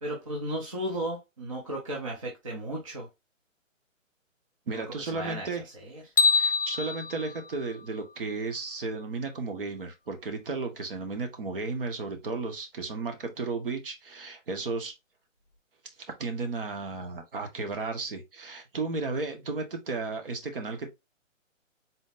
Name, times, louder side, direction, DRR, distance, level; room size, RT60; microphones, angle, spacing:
voice 1, 0.0-3.1 5.0-5.5 5.7-6.0, right 1 dB, 25° right, 0.7 m, -34 dB
voice 2, 4.7-5.6 6.3-14.9 16.2-20.9, right 3 dB, 45° right, 1.3 m, -34 dB
sound 1, 6.2-8.4, left 4 dB, 45° left, 0.8 m, -27 dB
4.1 x 3.8 x 2.5 m
hypercardioid pair, 165°, 39 cm